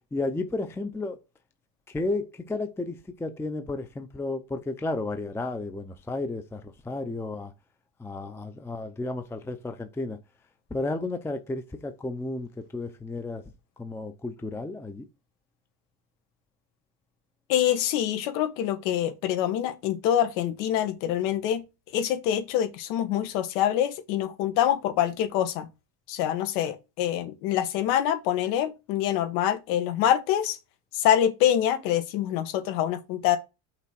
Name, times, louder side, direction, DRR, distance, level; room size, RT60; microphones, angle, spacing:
voice 1, 0.1-1.2 1.9-7.5 8.0-10.2 10.7-13.4 13.8-15.1, left 2 dB, 5° left, 0.5 m, -32 dB
voice 2, 17.5-21.6 21.9-25.7 26.1-30.6 30.9-33.4, left 11 dB, 85° left, 1.5 m, -25 dB
5.9 x 3.6 x 5.9 m
cardioid pair, 125°, 49 cm